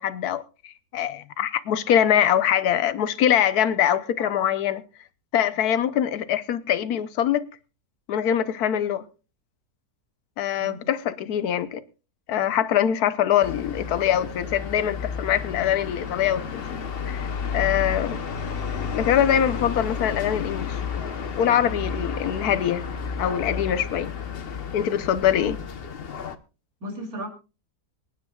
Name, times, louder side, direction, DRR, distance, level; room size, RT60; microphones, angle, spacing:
voice 1, 0.0-4.8 5.3-7.5 8.1-9.0 10.4-11.8 12.3-16.8 17.1-17.3 17.5-18.2 18.9-20.8 21.4-22.8 23.2-24.1 24.7-25.6, left 10 dB, 80° left, 1.4 m, -23 dB
sound 1, 13.4-26.4, left 6 dB, 45° left, 1.0 m, -32 dB
voice 2, 26.8-27.3, right 1 dB, 70° right, 3.5 m, -36 dB
25.5 x 10.0 x 2.4 m
omnidirectional pair, 1.6 m